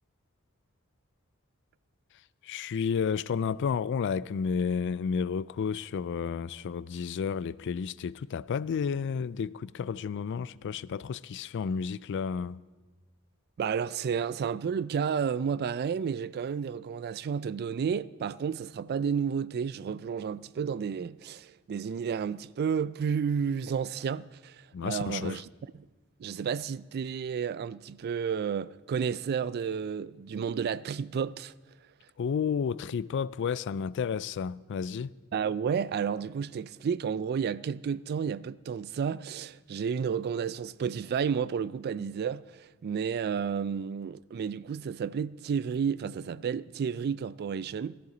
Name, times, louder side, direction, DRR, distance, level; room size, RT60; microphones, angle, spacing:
voice 1, 2.4-12.6 24.7-25.4 32.2-35.1, left 6 dB, 55° left, 0.3 m, -31 dB
voice 2, 13.6-25.4 26.2-31.5 35.3-48.0, right 7 dB, 50° right, 0.3 m, -31 dB
17.5 x 13.5 x 3.9 m
head